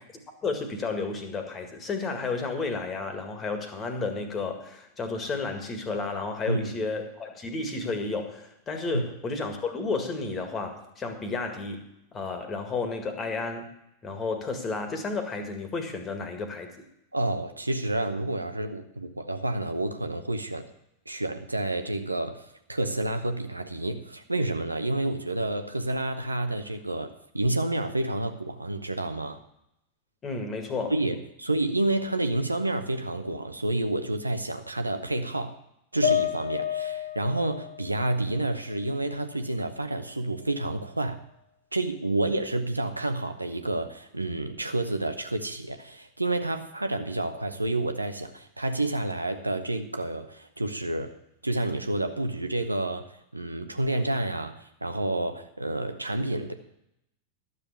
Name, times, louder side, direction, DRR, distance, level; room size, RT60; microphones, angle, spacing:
voice 1, 0.4-11.9 12.1-13.7 14.0-16.7 30.2-30.9, left 3 dB, 25° left, 6 dB, 1.9 m, -32 dB
voice 2, 6.5-6.8 8.9-9.0 17.1-20.6 21.1-29.4 30.9-35.6 35.9-41.2 41.7-51.1 51.4-56.5, right 2 dB, 85° right, 7 dB, 0.8 m, -29 dB
sound 1, 36.0-39.4 39.8-40.8, left 9 dB, 85° left, 2.2 m, -32 dB
12.0 x 6.9 x 7.1 m, 0.80 s
figure-of-eight pair, 90°, 0 cm